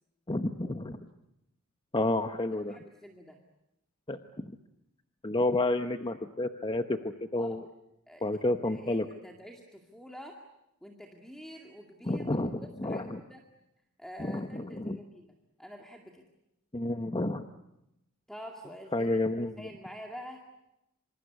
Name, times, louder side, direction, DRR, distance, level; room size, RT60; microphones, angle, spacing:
voice 1, 0.3-1.0 1.9-2.8 4.1-4.5 5.2-7.6 8.2-9.1 12.0-12.5 12.8-13.2 14.2-15.0 16.7-17.5 18.9-19.7, left 2 dB, 20° left, 8 dB, 0.9 m, -30 dB
voice 2, 2.6-3.4 7.4-7.6 8.1-8.4 8.6-10.4 10.8-12.4 12.8-13.4 14.0-15.3 15.6-16.2 18.3-19.2 19.6-20.4, equal, ahead, 2 dB, 2.2 m, -47 dB
26.5 x 26.0 x 8.2 m, 0.86 s
head